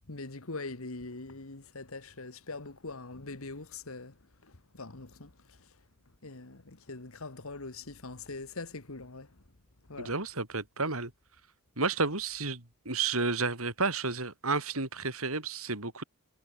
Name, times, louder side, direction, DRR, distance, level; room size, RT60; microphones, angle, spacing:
voice 1, 0.1-4.2 4.4-5.7 6.2-9.4 9.9-10.1, left 3 dB, 75° left, 1.9 m, -43 dB
voice 2, 10.0-11.1 11.8-16.0, right 4 dB, 75° right, 5.3 m, -31 dB
head